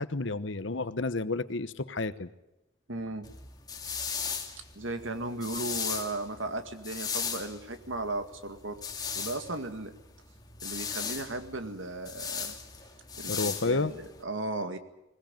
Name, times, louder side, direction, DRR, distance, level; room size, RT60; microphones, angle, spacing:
voice 1, 0.0-2.3 13.3-13.9, left 3 dB, 65° left, 14 dB, 1.0 m, -31 dB
voice 2, 2.9-3.3 4.7-8.8 9.2-9.9 10.6-12.5 13.2-14.8, right 2 dB, 75° right, 8 dB, 2.1 m, -36 dB
sound 1, 3.2-14.2, left 6 dB, 20° left, 2.3 m, -37 dB
20.5 x 20.0 x 9.1 m, 0.91 s
head